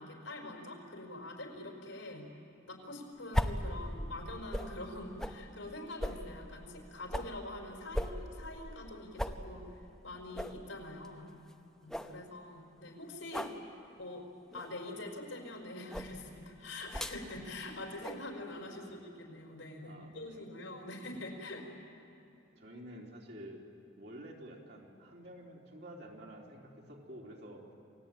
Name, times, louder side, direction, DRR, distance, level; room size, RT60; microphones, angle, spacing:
voice 1, 0.0-2.3 2.6-11.4 11.8-13.5 14.0-14.3 14.5-21.9, left 2 dB, 85° left, 1 dB, 4.9 m, -45 dB
sound 1, 3.3-4.8 5.2-5.4 6.0-7.4 7.9-8.9 9.2-9.4 9.8-9.9 10.3-10.6 11.0-11.1 11.5-11.6 11.9-12.2 13.3-13.6 14.5-14.7 15.9-16.1 16.9-17.2 18.0-18.2, equal, 5° left, 0.8 m, -37 dB
voice 2, 18.6-19.0 19.8-20.5 22.6-23.7 24.0-27.6, equal, 55° right, -1 dB, 3.4 m, -50 dB
28.0 x 18.0 x 8.9 m, 2.8 s
head